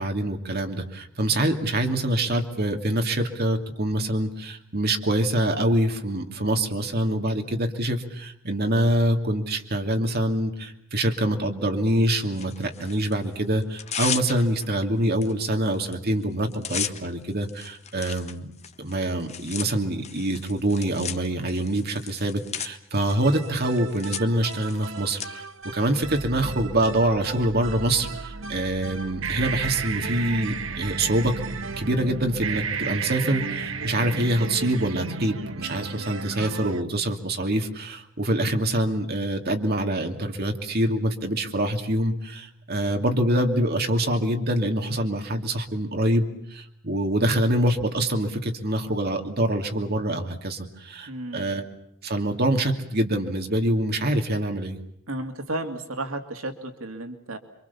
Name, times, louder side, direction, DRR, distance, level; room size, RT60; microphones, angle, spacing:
voice 1, 0.0-18.5 18.8-25.5 25.7-31.3 31.8-51.6 52.0-54.8, right 1 dB, 50° right, 4 dB, 2.7 m, -25 dB
Tearing, 12.3-13.2 13.6-14.7 15.2-15.3 15.6-15.9 16.2-25.3, left 8 dB, 30° left, 1.4 m, -35 dB
sound 1, 23.1-36.8, right 4 dB, 65° right, 1.4 m, -33 dB
voice 2, 51.1-51.5 55.1-57.4, right 2 dB, 85° right, 7 dB, 2.4 m, -33 dB
28.5 x 24.5 x 7.1 m, 0.72 s
head